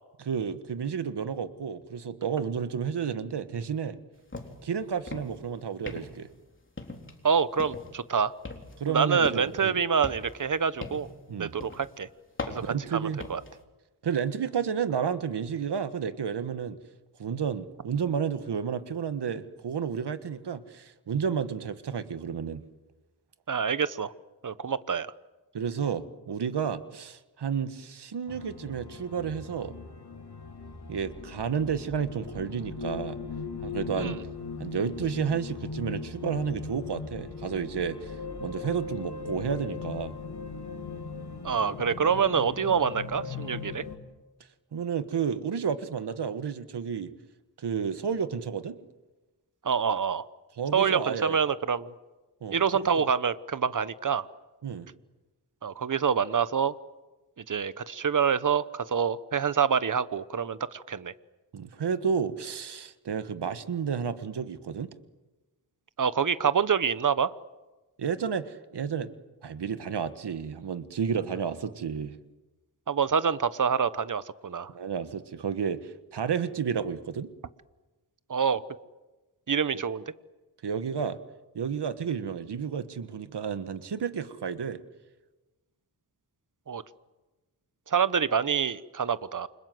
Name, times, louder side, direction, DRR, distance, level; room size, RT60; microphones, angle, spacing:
voice 1, 0.2-4.0 4.6-6.3 8.8-9.8 11.3-11.5 12.6-13.2 14.0-16.8 17.2-22.6 25.5-29.7 30.9-33.2 33.6-34.2 34.6-38.1 38.4-40.2 44.7-47.1 47.6-48.8 50.6-51.4 52.4-52.6 52.9-53.1 54.6-54.9 61.5-64.9 68.0-69.1 69.4-72.2 74.7-77.3 79.7-79.8 80.6-81.2 81.5-84.8, right 7 dB, 80° right, 11 dB, 1.6 m, -31 dB
sound 1, 4.3-4.7 5.0-5.4 5.9-6.3 6.8-7.2 7.6-8.0 8.4-9.6 10.0-11.2 11.6-11.9 12.4-13.5, left 2 dB, 30° left, 3.7 m, -39 dB
voice 2, 7.2-8.3 8.9-11.1 11.4-12.1 12.5-12.6 12.9-13.4 23.5-24.1 24.4-25.1 34.0-34.2 41.4-43.8 49.6-50.2 50.7-51.9 52.5-54.3 55.6-56.7 57.5-61.1 66.0-67.3 72.9-74.7 78.3-78.6 79.5-80.0 86.7-86.8 87.9-89.5, right 6 dB, 50° right, 15 dB, 1.1 m, -26 dB
sound 2, 28.3-44.0, left 5 dB, 70° left, 4.1 m, -39 dB
29.0 x 26.0 x 7.9 m, 1.1 s
wide cardioid pair, 100°, 40 cm